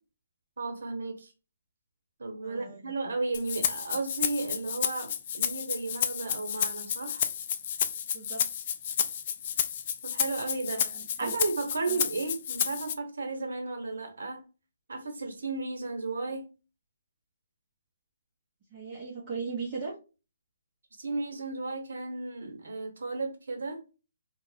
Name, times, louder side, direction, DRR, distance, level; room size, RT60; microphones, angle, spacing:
voice 1, 0.6-1.3 2.2-7.3 10.0-10.9 11.2-14.4 14.9-16.5 21.0-23.8, right 3 dB, 75° right, 1.1 m, -34 dB
voice 2, 2.4-2.9 8.1-8.4 10.7-11.3 11.9-12.0 18.7-19.9, right 4 dB, 30° right, 0.8 m, -38 dB
Rattle (instrument), 3.3-12.9, left 8 dB, 40° left, 0.3 m, -31 dB
2.4 x 2.2 x 3.4 m
hypercardioid pair, 155°, 0 cm